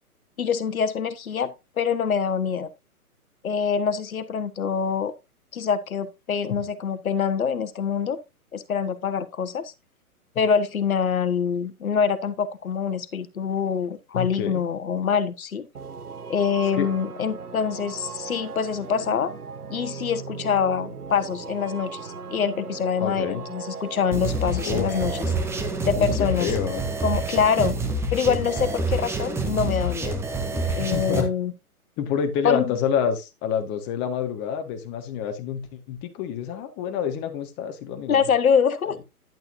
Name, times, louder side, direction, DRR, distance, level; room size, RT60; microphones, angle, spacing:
voice 1, 0.4-2.7 3.4-5.1 5.5-8.2 8.5-9.7 10.3-15.7 16.3-19.3 19.7-25.2 25.8-26.5 27.0-27.8 28.1-30.2 30.7-31.5 32.4-32.7 38.1-39.0, left 6 dB, 65° left, 1.3 m, -25 dB
voice 2, 14.1-14.6 16.7-16.9 23.0-23.4 24.6-24.9 25.9-26.9 30.5-31.3 32.0-38.3 38.8-39.0, left 8 dB, 25° left, 1.5 m, -28 dB
sound 1, 15.7-26.4, right 5 dB, 85° right, 1.0 m, -38 dB
sound 2, 24.1-31.2, right 2 dB, 5° right, 0.9 m, -27 dB
10.5 x 9.0 x 2.6 m
figure-of-eight pair, 125°, 45 cm